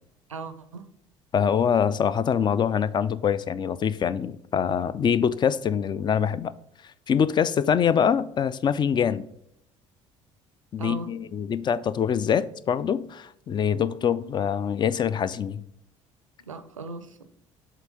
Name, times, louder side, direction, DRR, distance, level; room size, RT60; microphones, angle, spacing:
voice 1, 0.3-0.9 7.1-7.2 10.8-11.1 16.5-17.3, right 2 dB, 85° right, 0.5 m, -37 dB
voice 2, 1.3-6.5 7.1-9.3 10.7-15.6, left 7 dB, 30° left, 0.4 m, -24 dB
7.6 x 2.8 x 5.0 m
figure-of-eight pair, 55°, 16 cm